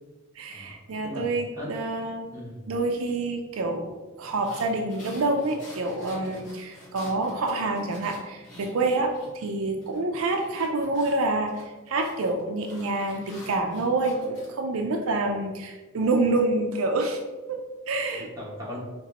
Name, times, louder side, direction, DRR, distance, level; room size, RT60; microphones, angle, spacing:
voice 1, 0.4-2.3 2.7-17.2 17.5-18.3, right 2 dB, 75° right, 3 dB, 0.4 m, -27 dB
voice 2, 2.3-2.7 18.1-18.8, left 1 dB, 15° right, -6 dB, 1.1 m, -38 dB
sound 1, 4.2-9.5 9.8-14.5, left 1 dB, 35° left, 1.3 m, -48 dB
4.3 x 2.9 x 2.8 m, 1.2 s
head